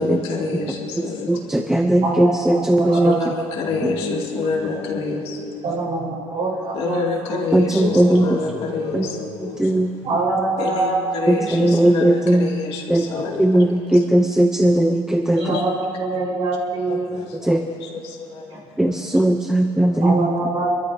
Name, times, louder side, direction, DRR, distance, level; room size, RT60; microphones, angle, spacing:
voice 1, 0.0-1.5 3.0-5.6 6.7-9.8 10.6-14.0 15.3-15.6 16.9-19.1 19.9-20.1, left 4 dB, 65° left, -2 dB, 2.3 m, -28 dB
voice 2, 1.3-3.2 3.8-3.9 7.5-8.3 8.9-9.1 9.6-9.9 11.3-12.5 12.9-13.0 13.4-15.6 17.4-17.6 18.8-20.3, right 1 dB, 5° right, 4 dB, 0.5 m, -18 dB
voice 3, 1.8-3.4 5.6-7.5 7.8-8.2 10.0-11.1 11.4-11.5 15.4-17.2 20.0-20.7, right 3 dB, 55° right, -3 dB, 4.2 m, -24 dB
26.5 x 13.0 x 2.7 m, 2.5 s
cardioid pair, 160°, 11 cm